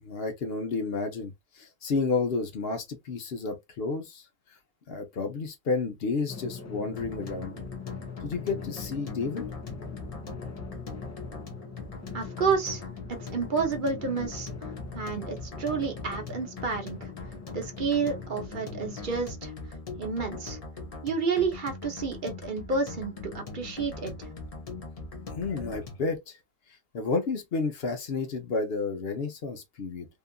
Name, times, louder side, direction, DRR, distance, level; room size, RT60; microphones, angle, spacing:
voice 1, 0.0-4.3 4.9-7.5 8.2-9.4 25.3-26.4 26.9-30.1, left 4 dB, 65° left, 0.9 m, -31 dB
Drum, 6.3-19.3, left 5 dB, 25° left, 0.4 m, -43 dB
sound 1, 7.0-26.2, left 3 dB, 40° left, 0.8 m, -41 dB
voice 2, 12.1-12.8 13.1-14.5 14.9-17.0 17.5-19.5 20.0-20.6 21.0-24.1, right 5 dB, 55° right, 0.8 m, -30 dB
2.8 x 2.4 x 2.2 m
omnidirectional pair, 1.1 m